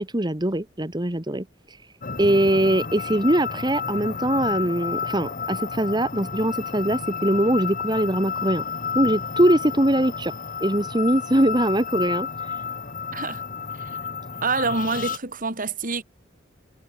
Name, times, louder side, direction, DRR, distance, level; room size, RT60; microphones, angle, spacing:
voice 1, 0.0-1.8 2.2-8.6 9.0-10.3 10.6-12.6, right 1 dB, 25° right, 1.8 m, -22 dB
sound 1, 2.0-15.2, left 6 dB, 45° left, 2.1 m, -31 dB
voice 2, 13.1-13.4 13.8-14.0 14.4-16.0, right 4 dB, 45° right, 3.7 m, -27 dB
head